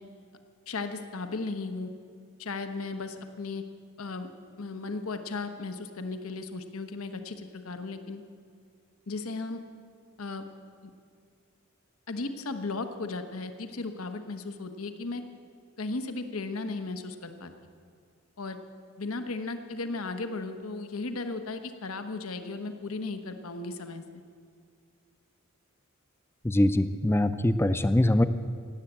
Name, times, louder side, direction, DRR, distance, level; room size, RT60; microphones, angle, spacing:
voice 1, 0.7-1.9 2.4-3.6 4.0-4.3 4.6-8.2 9.1-9.6 10.2-10.4 12.1-15.2 15.8-17.5 18.4-18.6 19.0-24.0, left 3 dB, 85° left, 8 dB, 1.1 m, -35 dB
voice 2, 26.4-28.2, left 1 dB, 10° left, 11 dB, 0.4 m, -23 dB
17.5 x 8.0 x 8.7 m, 2.2 s
head